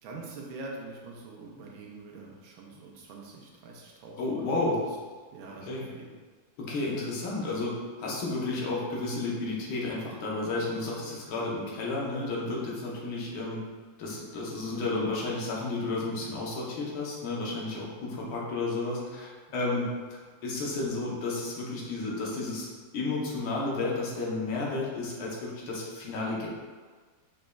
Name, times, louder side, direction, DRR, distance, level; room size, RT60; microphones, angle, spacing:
voice 1, 0.0-4.6 5.3-6.1 19.6-19.9, right 3 dB, 85° right, -1 dB, 1.5 m, -44 dB
voice 2, 4.2-4.8 5.6-5.9 6.6-7.7 8.0-13.6 14.0-19.8 20.4-22.7 22.9-26.5, left 3 dB, 80° left, -4 dB, 1.8 m, -32 dB
5.2 x 4.1 x 2.3 m, 1.5 s
omnidirectional pair, 2.2 m